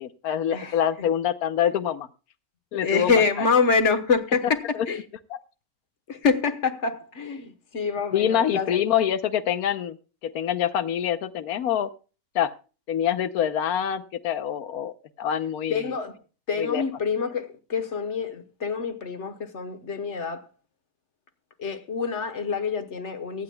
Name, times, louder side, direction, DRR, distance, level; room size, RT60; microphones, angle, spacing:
voice 1, 0.0-2.1 2.7-3.1 8.1-10.0 10.2-11.9 12.3-12.5 12.9-14.9 15.2-15.9 16.6-16.8, left 9 dB, 85° left, 1.2 m, -25 dB
voice 2, 2.7-5.0 6.1-8.8 15.7-16.2 16.5-20.5 21.6-23.4, left 5 dB, 55° left, 1.4 m, -26 dB
24.0 x 8.8 x 2.2 m
omnidirectional pair, 1.5 m